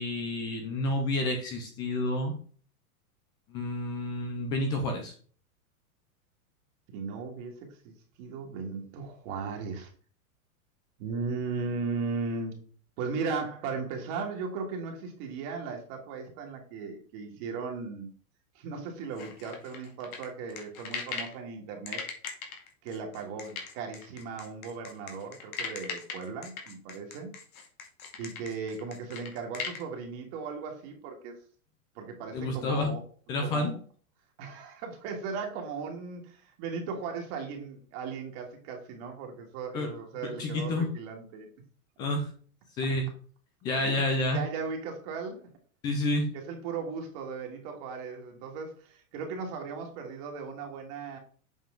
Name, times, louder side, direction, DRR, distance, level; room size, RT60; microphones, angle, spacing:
voice 1, 0.0-2.3 3.5-5.1 32.3-32.9 33.3-33.8 39.7-39.9 40.4-40.9 42.0-42.3 42.8-43.1 43.6-44.4 45.8-46.3, left 2 dB, 10° left, 4 dB, 0.3 m, -29 dB
voice 2, 6.9-9.9 11.0-12.6 13.0-18.1 18.5-22.0 22.8-27.3 28.2-31.4 32.0-33.0 33.4-33.7 34.4-41.5 43.8-43.9 44.3-45.5 46.3-51.2, right 5 dB, 45° right, 2 dB, 1.8 m, -37 dB
sound 1, 19.2-21.4 21.9-29.8, left 6 dB, 70° left, 2.3 m, -39 dB
7.6 x 5.1 x 3.7 m, 0.43 s
supercardioid pair, 150°, 44 cm